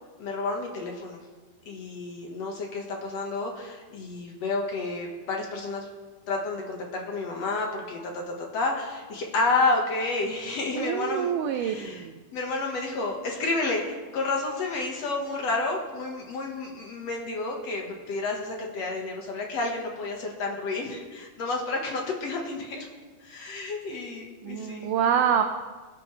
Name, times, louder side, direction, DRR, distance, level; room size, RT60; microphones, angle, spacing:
voice 1, 0.2-1.3 1.7-5.9 6.3-12.1 12.3-22.9 23.2-24.9, left 3 dB, 55° left, 0 dB, 2.2 m, -30 dB
voice 2, 10.8-12.2 24.4-25.4, right 8 dB, 80° right, 6 dB, 1.9 m, -26 dB
21.5 x 9.7 x 3.3 m, 1.3 s
omnidirectional pair, 4.3 m